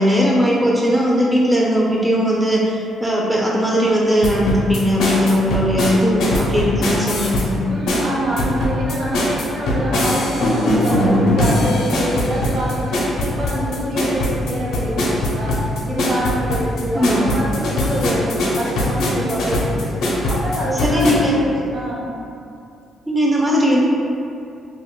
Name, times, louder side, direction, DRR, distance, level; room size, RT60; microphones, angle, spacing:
voice 1, 0.0-7.6 16.9-17.3 20.8-21.3 23.1-23.8, equal, 5° right, -4 dB, 0.3 m, -18 dB
sound 1, 4.2-7.5 7.9-21.1, left 1 dB, 80° left, 0.5 m, -20 dB
voice 2, 7.7-20.0 20.3-22.1, right 1 dB, 60° right, -6 dB, 0.8 m, -25 dB
2.2 x 2.2 x 3.5 m, 2.6 s
cardioid pair, 90°, 0 cm